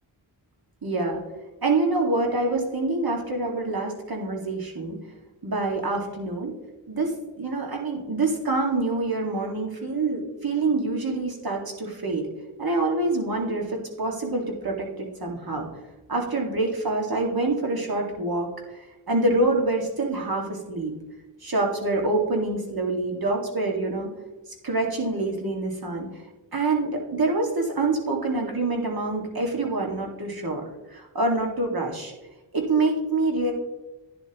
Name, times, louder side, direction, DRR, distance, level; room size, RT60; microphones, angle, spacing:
voice 1, 0.8-1.2 1.6-5.0 5.4-6.6 6.9-12.3 12.6-15.7 16.1-18.5 19.1-20.9 21.4-24.1 24.6-26.1 26.5-30.6 30.9-32.1 32.5-33.5, right 2 dB, 55° right, 1 dB, 2.2 m, -26 dB
11.5 x 10.0 x 3.0 m, 1.1 s
cardioid pair, 60°, 44 cm